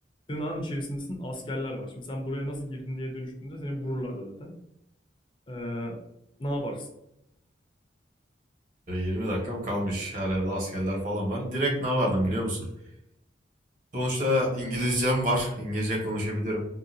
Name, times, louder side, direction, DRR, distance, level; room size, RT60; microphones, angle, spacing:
voice 1, 0.3-4.6 5.5-5.9 6.4-6.9, equal, 25° left, 1 dB, 0.5 m, -33 dB
voice 2, 8.9-12.7 13.9-16.7, equal, 45° right, -2 dB, 1.1 m, -27 dB
3.7 x 2.2 x 2.6 m, 0.82 s
head